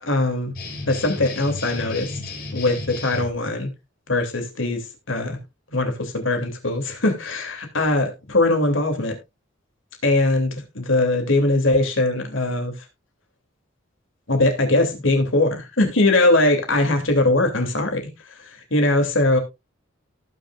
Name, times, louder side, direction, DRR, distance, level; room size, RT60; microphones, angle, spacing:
voice 1, 0.0-0.5 0.9-2.1 2.5-3.7 4.1-4.8 5.1-5.4 5.7-9.1 10.0-12.7 14.3-18.0 18.7-19.4, left 2 dB, 70° left, 4 dB, 3.0 m, -21 dB
sound 1, 0.5-3.3, left 3 dB, 50° left, 4.4 m, -33 dB
18.5 x 6.3 x 2.5 m, 0.23 s
head